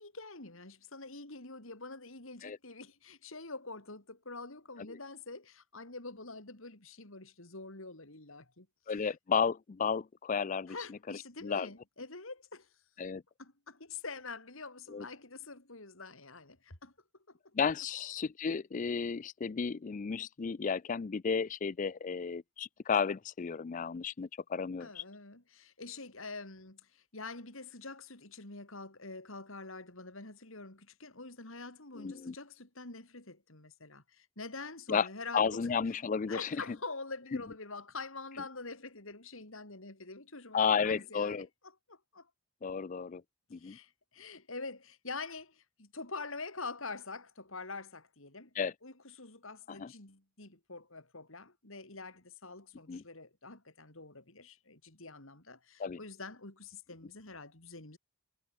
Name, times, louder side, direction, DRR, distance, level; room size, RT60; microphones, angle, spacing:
voice 1, 0.0-9.0 10.7-12.7 13.4-16.9 17.3-17.4 24.8-35.7 36.3-41.5 41.9-42.3 43.6-48.5 48.8-58.0, left 3 dB, 70° left, 3.9 m, -46 dB
voice 2, 8.9-11.7 13.0-13.2 14.9-15.1 17.5-25.0 32.0-32.3 34.9-35.1 35.3-36.8 37.3-37.4 40.5-41.5 42.6-43.2 43.5-43.8 48.6-48.7 49.7-49.9 52.9-53.0 55.8-56.0, left 6 dB, 35° left, 0.4 m, -33 dB
head